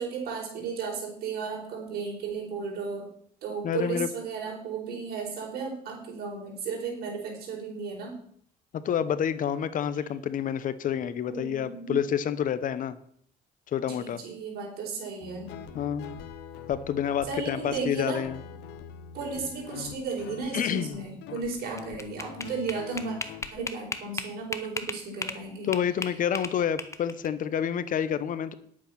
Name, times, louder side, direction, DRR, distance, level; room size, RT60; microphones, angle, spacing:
voice 1, 0.0-3.1 3.4-8.2 11.3-12.0 13.9-15.6 17.2-18.2 19.1-23.2 23.5-25.7, right 5 dB, 65° right, -1 dB, 4.8 m, -34 dB
voice 2, 3.6-4.1 8.7-13.0 13.7-14.2 15.7-16.1 16.7-18.4 20.5-21.0 25.6-28.5, left 9 dB, 55° left, 14 dB, 0.9 m, -28 dB
Guitar, 15.2-23.5, left 8 dB, 90° left, 1.0 m, -44 dB
sound 1, 21.5-25.4 25.7-27.3, left 3 dB, 15° left, 1.1 m, -35 dB
10.0 x 8.6 x 5.9 m, 0.64 s
cardioid pair, 110°, 17 cm